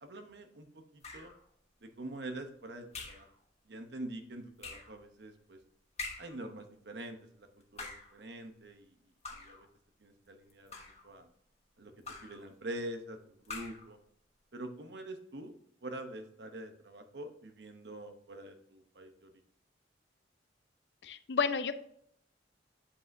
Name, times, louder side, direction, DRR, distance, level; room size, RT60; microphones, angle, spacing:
voice 1, 0.0-1.3 1.8-3.3 3.7-5.6 6.2-7.5 7.7-9.0 9.3-9.7 10.0-11.3 11.8-14.0 14.5-15.5 15.8-19.3, right 1 dB, 65° right, 7 dB, 0.9 m, -45 dB
sound 1, 1.0-1.4 2.9-3.3 4.6-5.0 6.0-6.4 7.6-8.2 9.2-9.7 10.5-11.1 12.0-12.4 13.4-13.9, left 3 dB, 35° left, 1.3 m, -44 dB
voice 2, 21.0-21.7, left 5 dB, 65° left, 11 dB, 0.5 m, -31 dB
8.2 x 5.5 x 2.7 m, 0.70 s
head